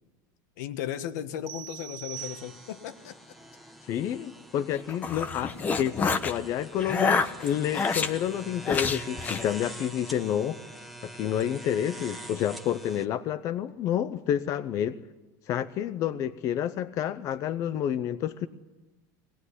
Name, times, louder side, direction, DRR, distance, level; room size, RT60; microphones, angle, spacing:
voice 1, 0.6-3.2 5.4-5.6, left 10 dB, 70° left, 10 dB, 1.5 m, -36 dB
sound 1, 1.5-3.0, right 13 dB, 55° right, 1.1 m, -42 dB
sound 2, 2.1-13.1, right 1 dB, ahead, 1.2 m, -45 dB
voice 2, 3.8-5.5 5.8-10.6 11.0-15.0 15.5-18.5, left 10 dB, 35° left, 11 dB, 0.7 m, -29 dB
sound 3, 4.7-6.4 6.8-8.1 8.6-9.5, left 4 dB, 15° left, 0.9 m, -28 dB
22.0 x 18.5 x 9.9 m, 1.1 s
cardioid pair, 175°, 10 cm